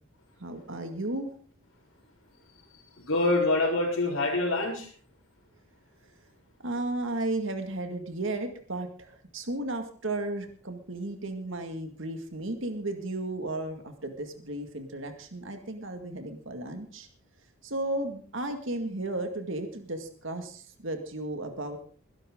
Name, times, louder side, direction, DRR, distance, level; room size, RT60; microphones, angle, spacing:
voice 1, 0.4-1.3 6.6-17.1 17.6-21.8, right 2 dB, 60° right, 6 dB, 2.1 m, -34 dB
voice 2, 2.7-4.9, left 2 dB, 60° left, -7 dB, 4.2 m, -26 dB
21.0 x 11.5 x 3.8 m, 0.44 s
head